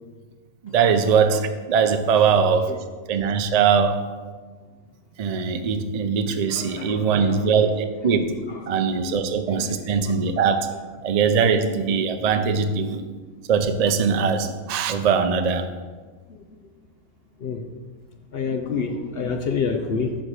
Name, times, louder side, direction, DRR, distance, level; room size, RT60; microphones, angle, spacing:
voice 1, 0.6-2.7 3.1-4.0 5.2-8.4 8.7-10.7 11.0-13.0 13.5-15.7, right 6 dB, 65° right, 8 dB, 0.4 m, -21 dB
voice 2, 6.5-7.1 8.5-8.6 9.5-9.6 16.3-16.4 17.4-17.6 18.3-20.2, left 5 dB, 55° left, 5 dB, 0.7 m, -27 dB
9.8 x 3.9 x 6.4 m, 1.4 s
omnidirectional pair, 1.5 m